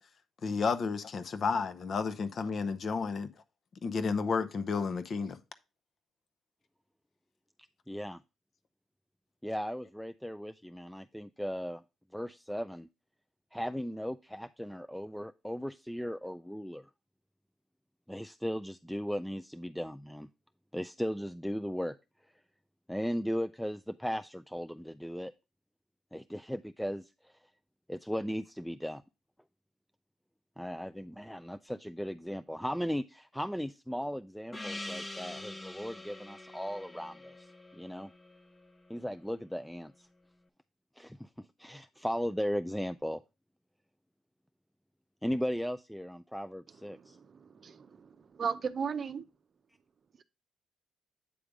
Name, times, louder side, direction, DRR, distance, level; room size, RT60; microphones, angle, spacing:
voice 1, 0.4-3.3 3.8-5.4, left 5 dB, 50° left, 0.8 m, -31 dB
voice 2, 7.9-8.2 9.4-11.8 12.1-12.9 13.5-16.9 18.1-20.3 20.7-21.9 22.9-25.3 26.1-27.3 27.9-29.0 30.6-38.1 38.9-40.1 41.0-43.2 45.2-47.2, equal, ahead, 0.3 m, -37 dB
Gong, 34.5-39.3, left 1 dB, 20° left, 0.8 m, -45 dB
voice 3, 46.8-49.3, right 6 dB, 45° right, 0.6 m, -37 dB
8.6 x 3.4 x 5.0 m
cardioid pair, 80°, 0 cm